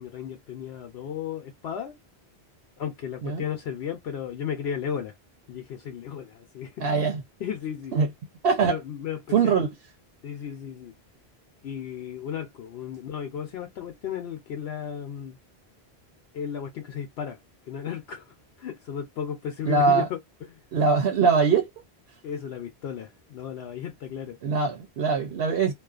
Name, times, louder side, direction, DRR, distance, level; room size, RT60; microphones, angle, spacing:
voice 1, 0.0-2.0 2.8-5.1 5.5-7.0 7.4-8.0 8.6-9.6 10.2-10.9 11.6-15.4 16.3-17.4 17.7-20.6 22.2-24.4, left 8 dB, 75° left, 0.8 m, -34 dB
voice 2, 6.8-7.2 7.9-8.1 8.4-8.8 9.3-9.7 19.6-20.1 20.7-21.7 24.4-25.7, right 5 dB, 70° right, 0.9 m, -22 dB
2.4 x 2.2 x 2.4 m
omnidirectional pair, 1.1 m